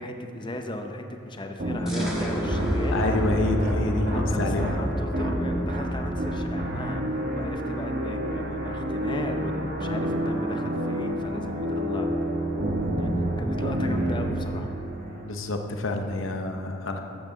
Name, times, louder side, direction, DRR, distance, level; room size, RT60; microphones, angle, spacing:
voice 1, 0.0-3.1 4.1-12.1 13.0-14.8, left 1 dB, 25° left, 4 dB, 0.7 m, -36 dB
sound 1, 1.6-15.2, right 1 dB, 50° right, 1.3 m, -29 dB
sound 2, 1.9-7.4, equal, 5° right, 1.6 m, -30 dB
voice 2, 2.9-4.7 15.2-17.0, left 2 dB, 70° left, 4 dB, 0.8 m, -27 dB
13.5 x 8.0 x 3.8 m, 2.7 s
head